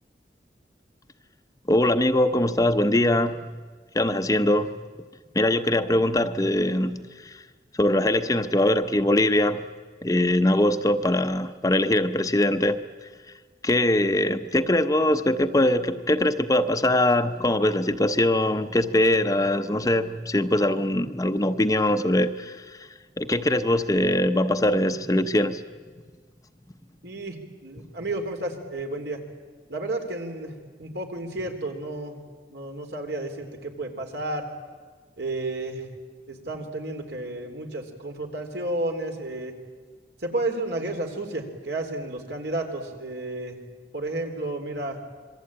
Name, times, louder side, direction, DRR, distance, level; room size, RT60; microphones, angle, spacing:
voice 1, 1.7-3.5 3.9-4.7 5.3-7.4 7.8-9.6 10.0-12.8 13.6-22.9 23.2-25.6, left 1 dB, 20° left, 0.7 m, -22 dB
voice 2, 27.0-27.4 27.6-29.2 29.7-30.5 30.8-32.2 32.5-34.5 35.2-35.9 36.3-39.5 40.2-43.6 43.9-45.0, right 2 dB, 75° right, 3.5 m, -31 dB
26.5 x 23.0 x 8.8 m
head